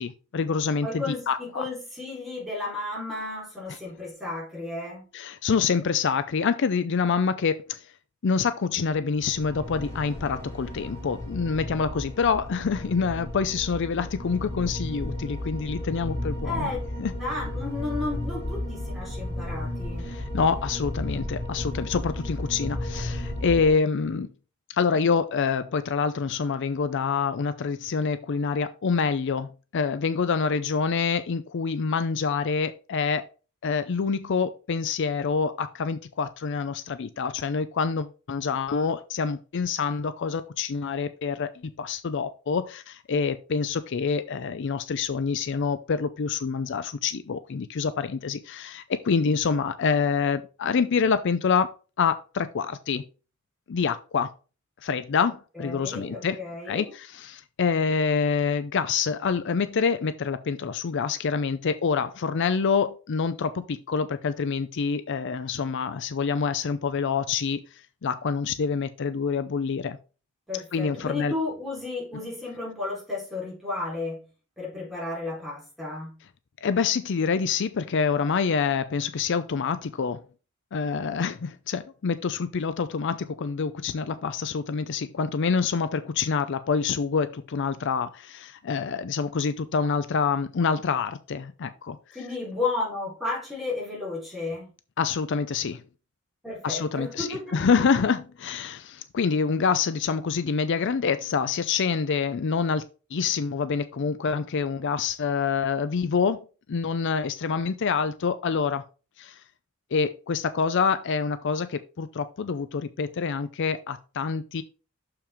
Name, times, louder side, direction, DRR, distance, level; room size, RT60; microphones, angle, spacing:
voice 1, 0.0-1.6 3.7-3.8 5.1-7.8 8.2-16.7 17.0-17.1 20.0-24.3 24.7-33.2 33.6-41.5 41.8-51.7 52.0-53.0 53.7-54.3 54.8-56.4 56.7-67.6 68.0-70.0 70.7-71.3 76.6-80.2 80.7-92.0 95.0-95.8 96.6-102.8 103.1-106.4 106.7-108.8 109.2-109.4 109.9-114.6, left 5 dB, 60° left, 0.5 m, -26 dB
voice 2, 0.8-5.1 16.4-16.8 17.2-20.1 55.5-56.9 70.5-74.2 74.6-76.2 92.1-94.7 96.4-97.6, left 3 dB, ahead, 4.0 m, -33 dB
sound 1, 9.1-23.7, left 1 dB, 15° left, 3.1 m, -34 dB
6.6 x 5.8 x 3.6 m
head